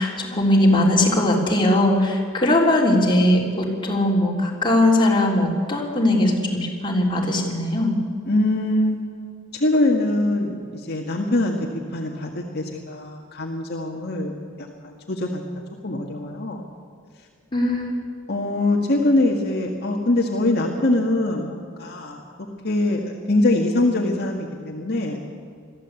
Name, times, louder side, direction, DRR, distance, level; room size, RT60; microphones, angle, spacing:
voice 1, 0.0-7.9 17.5-18.1, left 1 dB, 25° left, -2 dB, 3.6 m, -20 dB
voice 2, 8.3-9.0 9.5-14.3 14.6-15.4 15.8-16.6 18.3-22.2 22.6-25.2, left 2 dB, 55° left, 0 dB, 1.8 m, -23 dB
22.0 x 14.5 x 8.3 m, 2.2 s
head